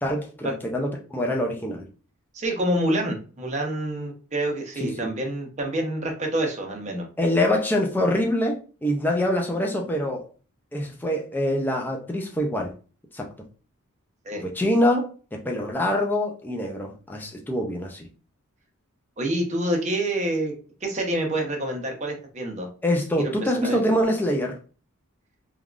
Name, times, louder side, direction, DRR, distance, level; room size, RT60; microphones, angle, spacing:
voice 1, 0.0-1.9 4.8-5.1 7.2-10.2 10.7-12.7 13.1-13.3 14.4-18.1 22.8-24.6, left 1 dB, 10° left, 1 dB, 0.4 m, -25 dB
voice 2, 2.3-7.1 14.2-14.4 19.2-20.5 20.8-22.7 23.2-23.8, right 1 dB, 30° right, 1 dB, 0.7 m, -27 dB
3.4 x 2.3 x 2.4 m, 0.37 s
head